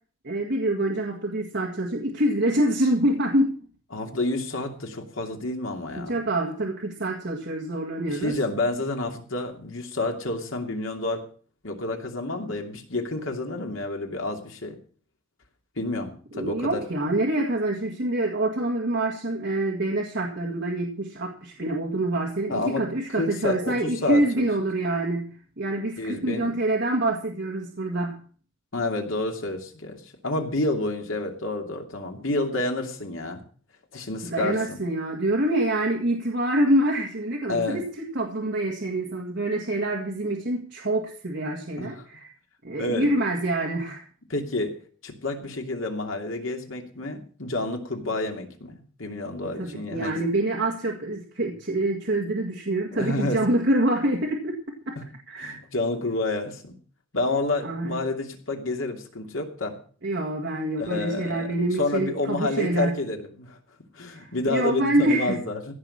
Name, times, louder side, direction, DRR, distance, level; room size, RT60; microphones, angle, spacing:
voice 1, 0.2-3.5 6.0-8.4 16.3-28.2 34.2-37.8 38.1-42.3 42.6-44.1 49.4-55.0 55.3-55.6 57.6-58.0 60.0-63.0 64.1-65.4, right 1 dB, 55° right, 1 dB, 2.0 m, -26 dB
voice 2, 3.9-6.1 8.1-11.2 11.6-14.8 15.8-16.8 22.5-22.8 23.2-24.5 26.0-26.5 28.7-33.4 33.9-34.8 37.5-37.8 41.8-41.9 42.8-43.1 44.3-44.7 45.0-50.1 52.9-53.4 55.0-55.1 55.4-56.8 57.1-59.8 60.8-61.5 61.8-63.6 63.9-65.7, left 2 dB, 75° left, 3 dB, 2.8 m, -29 dB
16.0 x 6.0 x 8.6 m, 0.43 s
head